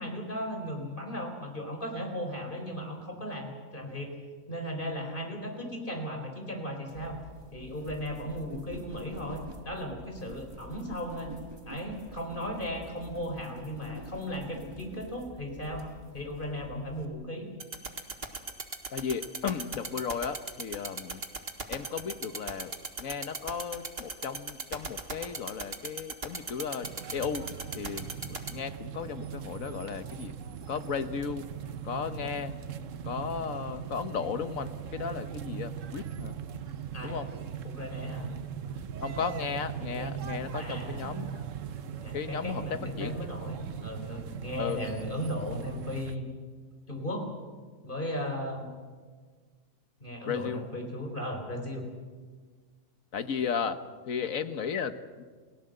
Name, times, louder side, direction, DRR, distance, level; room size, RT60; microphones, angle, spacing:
voice 1, 0.0-4.1 4.5-7.2 7.5-11.4 11.6-15.9 16.1-17.5 36.9-38.3 40.6-41.0 42.0-46.3 46.9-47.3 47.8-48.7 50.0-51.9, equal, 40° left, 4 dB, 4.5 m, -36 dB
sound 1, 6.9-17.0, right 2 dB, 20° right, 2.0 m, -47 dB
sound 2, 17.6-28.5, right 3 dB, 45° right, 2.1 m, -35 dB
voice 2, 18.9-21.2 21.7-22.7 23.0-27.5 27.7-30.3 30.7-31.5 31.8-32.5 33.0-36.3 37.0-37.3 39.0-41.4 42.1-43.2 44.6-44.8 50.2-50.7 53.1-53.8 54.1-55.2, left 6 dB, 80° left, 10 dB, 1.6 m, -35 dB
sound 3, 26.8-46.2, right 8 dB, 70° right, 1.3 m, -39 dB
29.0 x 17.5 x 7.9 m, 1.5 s
omnidirectional pair, 1.4 m